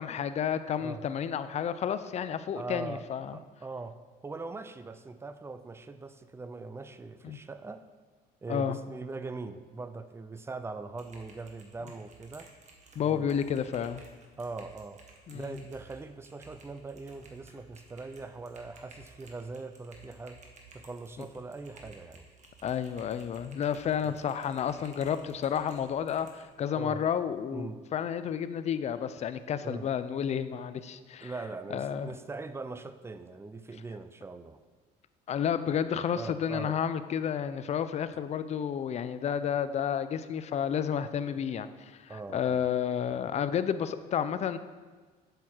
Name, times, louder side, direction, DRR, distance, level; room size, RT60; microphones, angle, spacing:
voice 1, 0.0-3.4 7.2-7.4 8.5-8.8 13.0-14.0 15.3-15.6 22.6-31.3 31.7-32.1 35.3-44.6, left 8 dB, 40° left, 12 dB, 0.5 m, -31 dB
voice 2, 2.5-3.0 3.3-4.0 4.2-7.9 8.4-12.5 13.0-13.3 14.4-15.0 15.3-20.4 20.7-22.3 24.0-24.2 26.8-27.0 27.5-27.8 29.6-29.9 31.2-34.6 36.1-36.8 42.1-42.7, right 3 dB, 15° right, 11 dB, 0.5 m, -41 dB
Typing, 11.0-26.4, right 3 dB, 45° right, 1.5 m, -55 dB
7.9 x 6.6 x 4.5 m, 1.4 s
cardioid pair, 110°, 17 cm